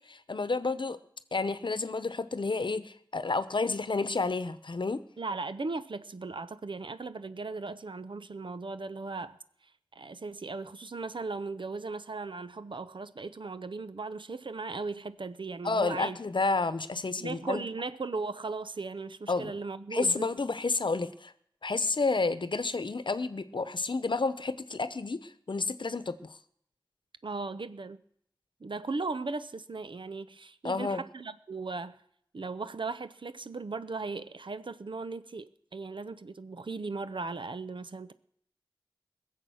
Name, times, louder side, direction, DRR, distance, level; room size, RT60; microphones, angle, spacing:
voice 1, 0.1-1.0 1.3-5.0 15.6-17.6 19.3-19.5 19.9-21.3 21.6-26.4 30.6-31.0, left 3 dB, 70° left, 0.9 m, -30 dB
voice 2, 5.2-9.4 9.9-16.2 17.2-20.3 27.2-28.0 28.6-32.0 32.3-38.1, right 3 dB, 75° right, 0.7 m, -37 dB
21.0 x 7.5 x 6.3 m
wide cardioid pair, 60°, 8 cm